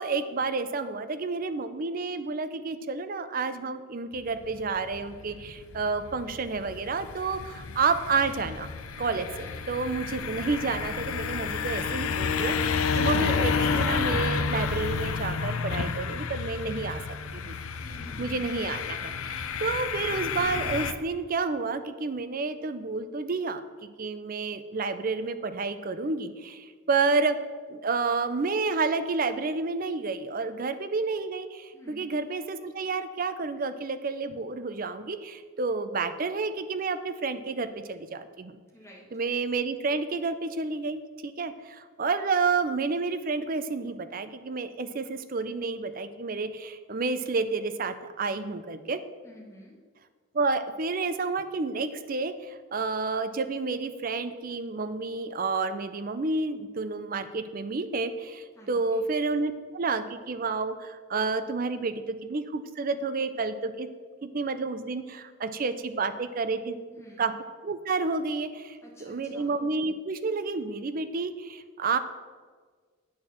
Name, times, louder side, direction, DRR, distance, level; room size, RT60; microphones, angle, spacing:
voice 1, 0.0-8.7 9.0-17.0 17.3-17.6 18.2-27.4 27.7-38.6 39.1-49.0 50.3-63.9 64.2-66.8 67.2-67.3 67.6-72.0, right 4 dB, 40° right, 11 dB, 0.5 m, -30 dB
sound 1, 4.1-20.9, left 5 dB, 85° left, 0.5 m, -30 dB
voice 2, 9.4-9.7 17.8-18.5 31.7-32.1 38.7-39.1 49.2-49.8 58.6-59.1 66.9-67.3 68.8-69.5, equal, 15° left, -4 dB, 1.8 m, -50 dB
8.6 x 4.4 x 7.1 m, 1.5 s
head